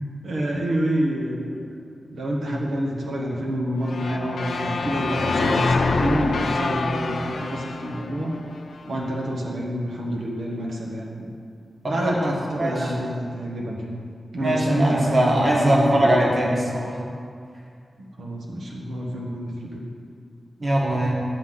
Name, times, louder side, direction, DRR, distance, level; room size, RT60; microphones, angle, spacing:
voice 1, 0.2-1.6 2.1-8.4 8.9-11.3 11.9-14.0 14.3-16.2 18.2-19.8, right 1 dB, 85° right, -2 dB, 1.3 m, -27 dB
sound 1, 3.9-8.9, left 3 dB, 70° left, 0.6 m, -26 dB
voice 2, 12.2-12.9 14.4-16.9 20.6-21.1, right 1 dB, 35° right, -3 dB, 1.5 m, -21 dB
11.0 x 3.9 x 7.8 m, 2.2 s
wide cardioid pair, 170°, 0 cm